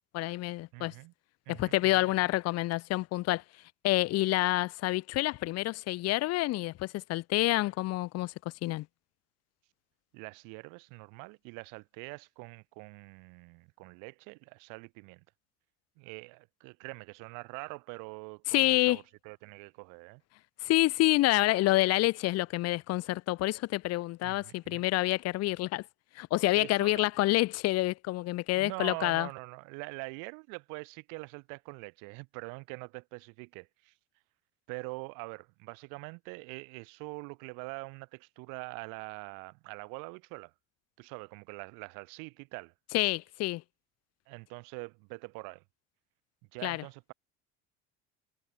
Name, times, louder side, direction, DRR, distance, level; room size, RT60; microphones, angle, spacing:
voice 1, 0.1-0.9 1.5-3.4 3.8-8.3 8.6-8.9 18.5-19.0 20.6-25.8 26.2-29.3 42.9-43.6 46.6-46.8, left 18 dB, 50° left, 0.6 m, -28 dB
voice 2, 0.7-1.1 1.5-2.1 10.1-15.2 16.0-20.2 24.2-24.8 26.5-27.0 28.6-33.9 34.7-40.5 41.0-42.7 44.3-45.6 46.5-47.1, right 33 dB, 75° right, 3.6 m, -44 dB
supercardioid pair, 100°, 32 cm